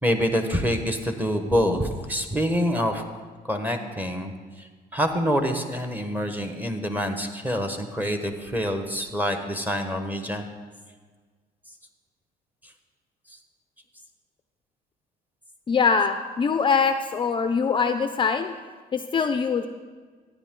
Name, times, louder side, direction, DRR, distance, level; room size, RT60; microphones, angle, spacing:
voice 1, 0.0-3.0 3.5-4.3 4.6-4.7 4.9-10.4, equal, 10° right, 5 dB, 1.2 m, -26 dB
voice 2, 15.7-18.5 18.9-19.7, left 5 dB, 30° left, 8 dB, 0.5 m, -23 dB
13.0 x 9.8 x 3.8 m, 1.5 s
cardioid pair, 110°, 17 cm